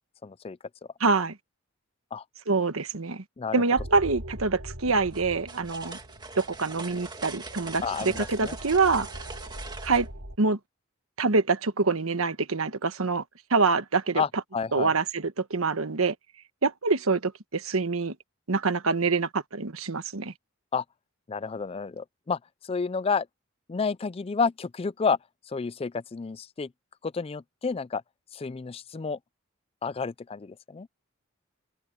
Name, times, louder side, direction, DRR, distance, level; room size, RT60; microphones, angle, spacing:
voice 1, 0.2-0.6 2.1-2.2 3.4-3.5 7.8-8.6 14.2-14.9 20.7-20.8 21.3-23.3 23.7-25.2 25.5-26.7 27.0-28.0 28.3-29.2 29.8-30.9, left 5 dB, 30° left, 0.4 m, -30 dB
voice 2, 1.0-1.4 2.5-3.2 3.5-6.0 6.4-9.1 9.8-10.1 10.4-10.6 11.2-13.2 13.5-14.2 14.7-16.1 16.6-18.1 18.5-20.3, right 4 dB, 85° right, 1.3 m, -25 dB
sound 1, 3.8-10.4, equal, 70° right, 7.2 m, -42 dB
sound 2, 5.1-10.1, right 4 dB, 20° right, 2.2 m, -42 dB
open air
head